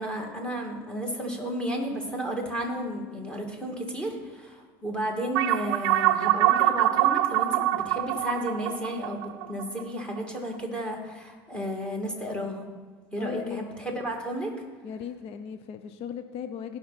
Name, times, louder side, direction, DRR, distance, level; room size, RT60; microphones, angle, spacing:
voice 1, 0.0-12.7 13.1-13.7 13.9-14.5, equal, 10° left, 1 dB, 2.4 m, -33 dB
sound 1, 5.3-10.2, right 14 dB, 75° right, 0.6 m, -24 dB
voice 2, 13.2-13.6 14.8-16.8, left 8 dB, 50° left, 9 dB, 0.7 m, -37 dB
17.0 x 5.8 x 4.2 m, 1.5 s
supercardioid pair, 100°, 12 cm